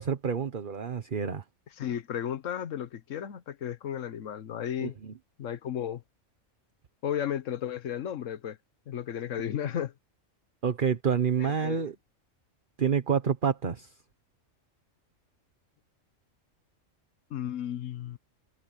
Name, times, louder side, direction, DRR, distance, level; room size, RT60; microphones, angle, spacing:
voice 1, 0.0-1.4 4.8-5.1 10.6-11.9 12.8-13.9, right 7 dB, 40° right, 1.2 m, -28 dB
voice 2, 1.8-4.9 5.4-6.0 7.0-8.6 8.9-9.9 11.4-11.8 17.3-18.2, left 9 dB, 75° left, 1.3 m, -34 dB
omnidirectional pair, 1.3 m